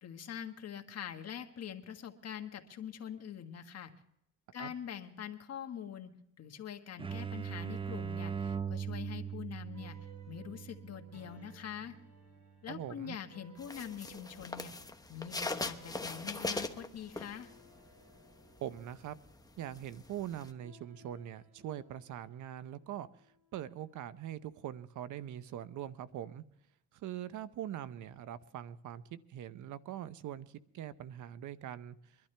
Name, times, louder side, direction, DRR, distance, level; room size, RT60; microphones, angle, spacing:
voice 1, 0.0-3.9 4.5-6.1 6.4-10.0 10.3-11.9 12.6-14.7 15.1-17.5, left 8 dB, 55° left, 6 dB, 1.5 m, -44 dB
sound 1, 7.0-12.5, right 7 dB, 20° right, 0.7 m, -41 dB
sound 2, 9.7-24.2, right 3 dB, 60° right, 4.7 m, -62 dB
voice 2, 12.7-13.2 18.6-19.2 19.6-23.1 23.5-26.4 26.9-32.2, right 11 dB, 75° right, 15 dB, 0.8 m, -42 dB
sound 3, 13.6-17.8 18.1-20.5, left 2 dB, 10° left, 1.0 m, -40 dB
23.0 x 12.0 x 3.3 m, 0.74 s
cardioid pair, 90°, 30 cm